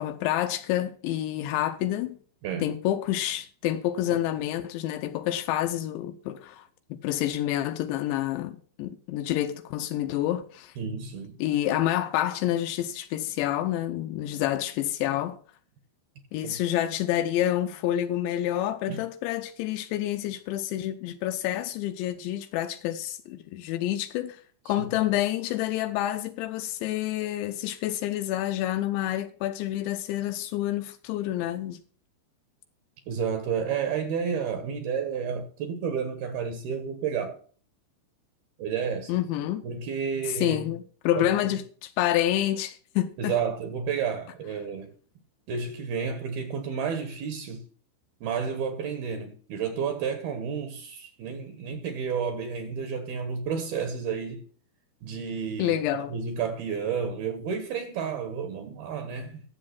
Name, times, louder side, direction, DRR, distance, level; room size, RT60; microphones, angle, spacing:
voice 1, 0.0-2.2 2.6-10.7 11.4-15.4 16.3-31.8 39.1-39.6 40.4-43.3 55.6-56.1, left 13 dB, 85° left, 3.0 m, -28 dB
voice 2, 10.8-11.4 16.4-16.6 18.9-19.0 24.7-25.0 33.1-37.4 38.6-39.2 39.6-40.7 41.2-41.6 43.2-44.9 45.5-47.7 48.2-54.4 55.0-55.8 56.1-59.4, right 6 dB, 65° right, 2.9 m, -31 dB
11.5 x 7.6 x 5.8 m
omnidirectional pair, 5.2 m